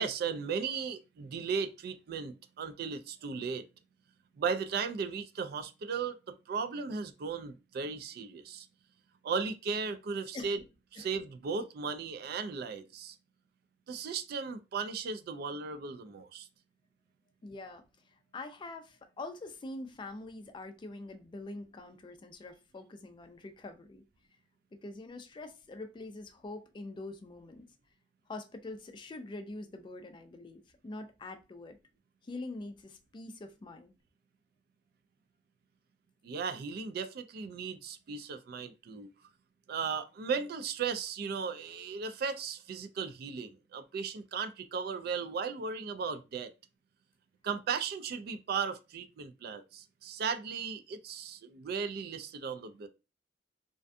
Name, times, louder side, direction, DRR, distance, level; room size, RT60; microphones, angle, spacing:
voice 1, 0.0-3.7 4.4-8.7 9.2-10.6 10.9-13.2 13.9-16.5 36.2-39.1 39.7-46.5 47.4-52.9, right 5 dB, 60° right, 0.3 m, -36 dB
voice 2, 17.4-17.8 18.3-24.0 24.7-27.7 28.3-31.8 32.2-33.9, left 2 dB, 25° left, 0.3 m, -44 dB
2.5 x 2.2 x 2.4 m
head